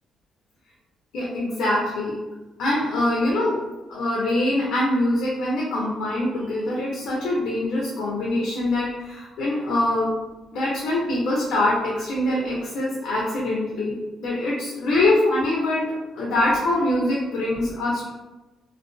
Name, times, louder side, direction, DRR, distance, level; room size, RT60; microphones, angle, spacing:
voice 1, 1.1-2.2 2.6-3.6 3.9-10.1 10.5-13.9 14.2-15.9 16.2-18.1, left 1 dB, 80° left, -5 dB, 0.5 m, -23 dB
2.5 x 2.2 x 2.2 m, 1.1 s
cardioid pair, 90°, 0 cm